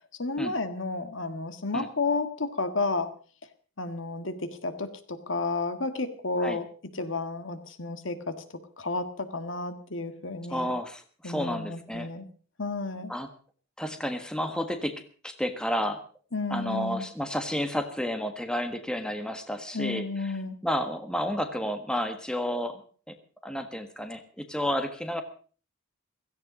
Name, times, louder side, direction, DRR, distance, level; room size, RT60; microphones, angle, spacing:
voice 1, 0.1-3.1 3.8-6.7 6.9-10.7 11.2-12.3 12.6-13.1 16.3-17.1 19.7-20.6, left 3 dB, 65° left, 10 dB, 1.7 m, -32 dB
voice 2, 10.5-12.1 13.1-13.3 13.8-16.0 16.5-20.3 20.6-23.2 23.4-25.2, equal, 5° left, 7 dB, 1.4 m, -31 dB
16.5 x 15.0 x 5.1 m, 0.41 s
head